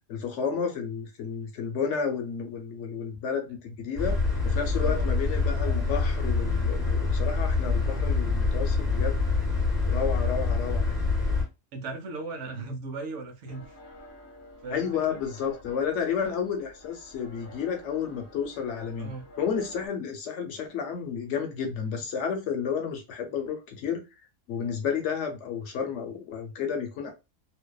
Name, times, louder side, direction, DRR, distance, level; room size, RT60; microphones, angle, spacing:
voice 1, 0.1-4.2 4.4-9.2 9.9-11.0 14.7-19.1 19.4-24.0 24.5-27.1, left 7 dB, 70° left, 0.9 m, -31 dB
sound 1, 4.0-11.4, left 3 dB, 20° right, 1.2 m, -26 dB
voice 2, 4.8-5.1 11.7-13.8 14.6-15.2 19.0-19.2, right 3 dB, 70° right, 0.9 m, -37 dB
sound 2, 13.5-19.9, left 1 dB, 35° left, 0.5 m, -49 dB
2.7 x 2.1 x 2.2 m
omnidirectional pair, 1.3 m